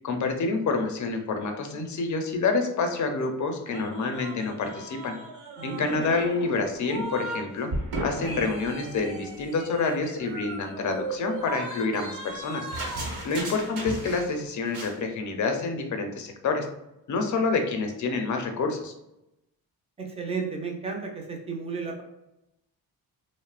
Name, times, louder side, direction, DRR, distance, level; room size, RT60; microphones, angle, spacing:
voice 1, 0.0-5.2 5.6-7.7 8.0-12.7 13.2-16.7 17.1-18.9, left 4 dB, 50° left, 5 dB, 0.5 m, -28 dB
sound 1, 3.7-7.5 7.7-14.4 14.7-15.0, right 2 dB, 65° right, 1.0 m, -36 dB
voice 2, 5.6-6.2 13.3-13.5 20.0-22.0, right 4 dB, 15° right, 2 dB, 0.3 m, -34 dB
3.0 x 2.0 x 2.3 m, 0.88 s
wide cardioid pair, 165°, 38 cm